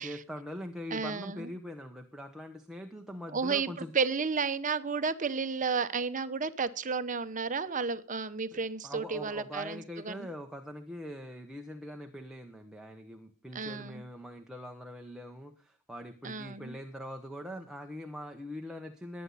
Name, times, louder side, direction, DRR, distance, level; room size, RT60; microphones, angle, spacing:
voice 1, 0.0-3.9 8.5-19.2, equal, ahead, 3 dB, 1.0 m, -43 dB
voice 2, 0.9-1.5 3.3-3.7 3.9-10.3 13.5-14.0 16.2-16.8, right 5 dB, 35° right, 12 dB, 0.9 m, -32 dB
19.5 x 9.6 x 4.1 m, 0.38 s
head